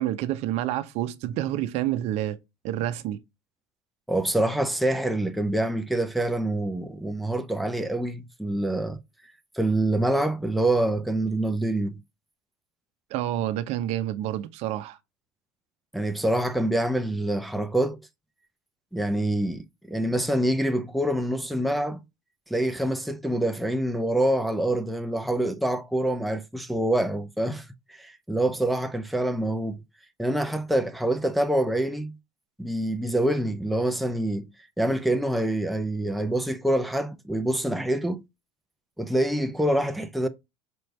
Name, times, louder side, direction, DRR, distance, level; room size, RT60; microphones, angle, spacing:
voice 1, 0.0-2.4 2.6-3.2 13.1-15.0, right 13 dB, 65° right, 0.7 m, -28 dB
voice 2, 4.1-9.0 9.5-12.0 15.9-18.0 18.9-22.0 22.5-29.8 30.2-32.1 32.6-34.5 34.8-38.2 39.0-40.3, right 1 dB, ahead, 0.6 m, -26 dB
5.2 x 3.2 x 3.2 m
supercardioid pair, 110°, 12 cm